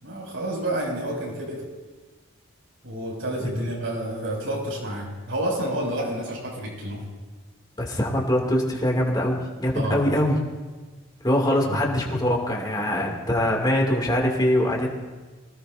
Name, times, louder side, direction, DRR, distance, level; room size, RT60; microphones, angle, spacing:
voice 1, 0.0-1.6 2.8-7.0 9.7-10.0 11.7-11.8, right 1 dB, 70° right, -2 dB, 6.5 m, -29 dB
voice 2, 7.8-10.4 11.2-14.9, left 1 dB, 20° left, -1 dB, 2.5 m, -23 dB
25.0 x 18.0 x 2.7 m, 1.3 s
head